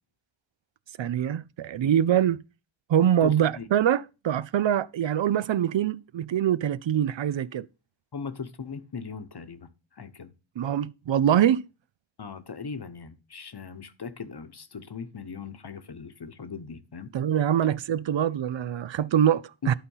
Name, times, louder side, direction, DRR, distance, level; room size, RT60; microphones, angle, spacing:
voice 1, 1.0-2.4 2.9-7.7 10.6-11.6 17.1-19.7, right 10 dB, 70° right, 0.5 m, -24 dB
voice 2, 3.2-3.7 8.1-9.7 10.0-10.3 12.2-17.1 19.6-19.7, left 5 dB, 55° left, 1.1 m, -39 dB
11.5 x 4.1 x 5.5 m
wide cardioid pair, 65°, 47 cm